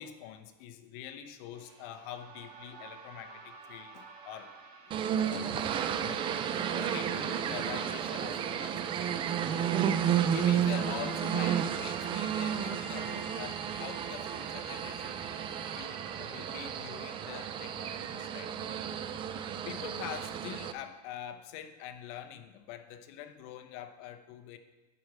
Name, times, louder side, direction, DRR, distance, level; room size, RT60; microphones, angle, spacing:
voice 1, 0.0-4.6 5.2-6.3 6.7-9.8 10.3-15.2 15.7-18.8 19.6-24.6, left 10 dB, 50° left, 0.8 m, -45 dB
sound 1, 1.5-18.9, right 4 dB, 50° right, 1.8 m, -49 dB
sound 2, 4.9-20.7, right 9 dB, 25° right, 0.4 m, -32 dB
11.0 x 4.8 x 7.5 m
supercardioid pair, 150°, 21 cm